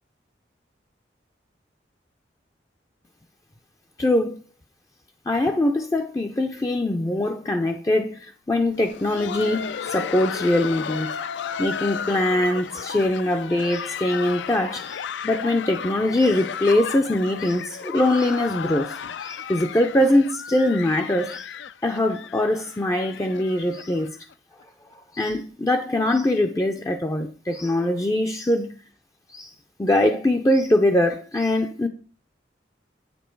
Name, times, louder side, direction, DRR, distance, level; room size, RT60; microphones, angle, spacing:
voice 1, 4.0-4.4 5.3-11.1 11.6-21.5 21.8-24.1 25.1-28.7 29.3-29.5 29.8-31.9, left 1 dB, 20° left, 0.4 m, -22 dB
Laughter, 8.6-24.3 24.6-24.7 25.3-25.4 25.9-26.2 27.2-27.3, left 7 dB, 85° left, 0.4 m, -34 dB
8.4 x 5.2 x 4.5 m
head